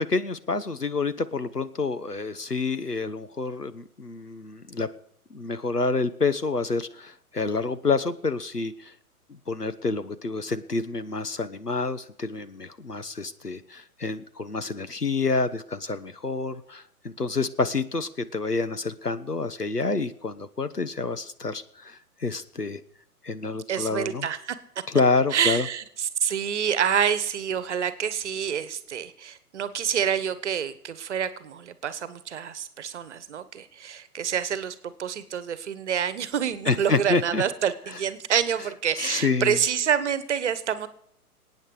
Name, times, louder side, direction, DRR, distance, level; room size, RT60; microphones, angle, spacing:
voice 1, 0.1-4.9 5.3-8.9 9.3-22.8 23.2-24.3 24.9-25.7 36.7-37.4 39.0-39.6, left 3 dB, 90° left, 12 dB, 1.2 m, -28 dB
voice 2, 23.7-24.6 25.3-40.9, right 8 dB, 50° right, 14 dB, 1.3 m, -27 dB
27.0 x 9.1 x 5.0 m, 0.69 s
figure-of-eight pair, 120°, 46 cm